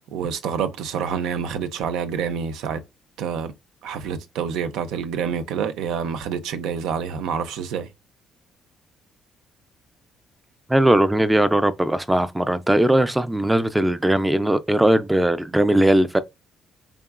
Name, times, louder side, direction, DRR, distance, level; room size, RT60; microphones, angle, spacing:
voice 1, 0.1-2.8 3.2-3.5 3.8-7.9, right 7 dB, 90° right, 0.5 m, -27 dB
voice 2, 10.7-16.2, right 1 dB, 5° right, 0.3 m, -19 dB
3.8 x 3.6 x 2.4 m
cardioid pair, 135°, 0 cm